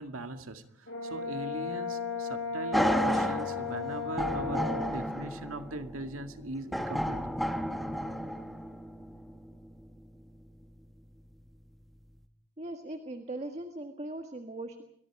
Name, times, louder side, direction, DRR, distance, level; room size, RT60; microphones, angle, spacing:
voice 1, 0.0-7.2, right 2 dB, 80° right, 2.1 m, -40 dB
Brass instrument, 0.9-5.0, left 4 dB, 60° left, 6.4 m, -35 dB
sound 1, 2.7-10.8 11.3-11.4, equal, ahead, 1.2 m, -33 dB
voice 2, 12.6-14.8, right 1 dB, 30° right, 1.6 m, -39 dB
29.5 x 23.0 x 4.8 m
head